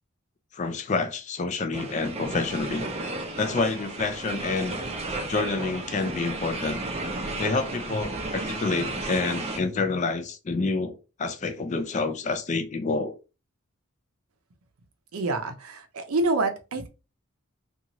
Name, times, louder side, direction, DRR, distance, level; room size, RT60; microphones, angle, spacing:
voice 1, 0.5-2.9 3.4-4.8 5.3-6.8 7.4-13.2, left 3 dB, 35° left, 0.4 m, -28 dB
sound 1, 1.7-9.6, right 2 dB, 30° right, 0.5 m, -33 dB
voice 2, 15.1-16.9, right 2 dB, 80° right, 0.6 m, -27 dB
2.7 x 2.4 x 2.9 m
head